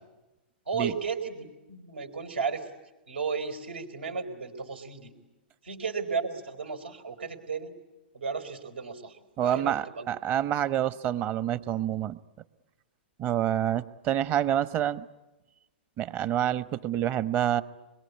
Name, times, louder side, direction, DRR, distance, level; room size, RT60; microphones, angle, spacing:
voice 1, 0.6-2.7 3.1-5.2 5.6-7.8 8.1-10.1, right 5 dB, 85° right, 7 dB, 4.5 m, -34 dB
voice 2, 9.4-12.2 13.2-15.1 16.0-17.6, right 11 dB, 35° right, 14 dB, 1.1 m, -27 dB
26.5 x 22.0 x 9.9 m, 1.1 s
hypercardioid pair, 120°, 6 cm